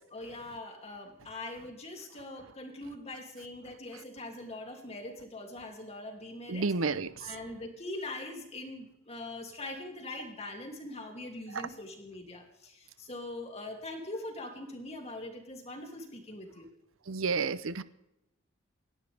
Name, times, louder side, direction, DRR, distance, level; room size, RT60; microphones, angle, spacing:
voice 1, 0.1-6.7 7.2-16.7, left 2 dB, 30° left, 2.7 m, -42 dB
voice 2, 6.5-7.1 11.5-11.6 17.1-17.8, right 4 dB, 80° right, 0.7 m, -30 dB
28.0 x 11.5 x 3.5 m
head